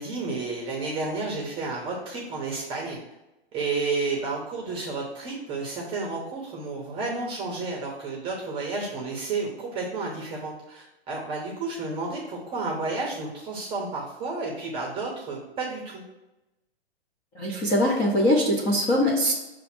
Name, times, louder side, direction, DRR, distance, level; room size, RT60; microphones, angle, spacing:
voice 1, 0.0-3.0 3.5-16.0, right 3 dB, 15° right, -1 dB, 0.7 m, -31 dB
voice 2, 17.3-19.3, left 1 dB, 15° left, -4 dB, 0.4 m, -22 dB
6.9 x 2.6 x 5.7 m, 1.0 s
hypercardioid pair, 150°, 32 cm